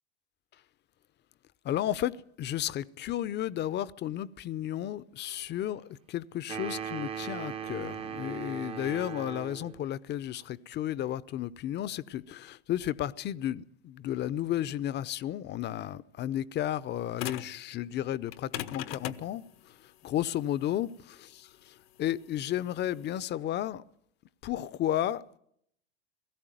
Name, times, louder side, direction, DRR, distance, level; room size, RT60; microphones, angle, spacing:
voice 1, 1.6-19.4 20.0-23.8 24.4-25.3, left 12 dB, 35° left, 0.7 m, -33 dB
sound 1, 6.5-9.8, right 8 dB, 20° right, 0.7 m, -38 dB
sound 2, 17.2-17.6 18.3-23.2, left 12 dB, 70° left, 1.1 m, -40 dB
18.0 x 15.5 x 9.1 m
hypercardioid pair, 100°, 31 cm